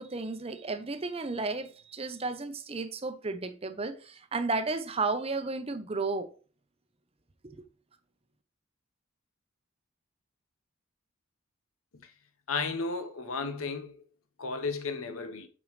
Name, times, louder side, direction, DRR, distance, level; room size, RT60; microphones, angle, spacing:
voice 1, 0.0-6.3 7.4-7.6, right 3 dB, 30° right, 0.7 m, -33 dB
voice 2, 12.5-14.0 14.4-15.5, left 4 dB, 90° left, 1.0 m, -33 dB
8.3 x 5.3 x 3.2 m
head